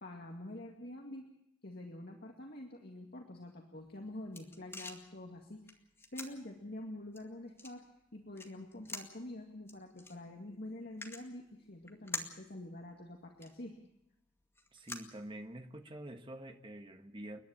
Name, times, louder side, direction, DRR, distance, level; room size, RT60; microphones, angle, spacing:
voice 1, 0.0-1.3 1.6-5.8 6.1-7.8 8.1-13.8, left 1 dB, 55° left, 1 dB, 2.2 m, -47 dB
sound 1, 3.8-15.8, left 3 dB, 15° left, 2.1 m, -50 dB
voice 2, 14.7-17.4, right 1 dB, 25° right, 6 dB, 1.5 m, -47 dB
29.5 x 11.0 x 8.9 m, 0.83 s
head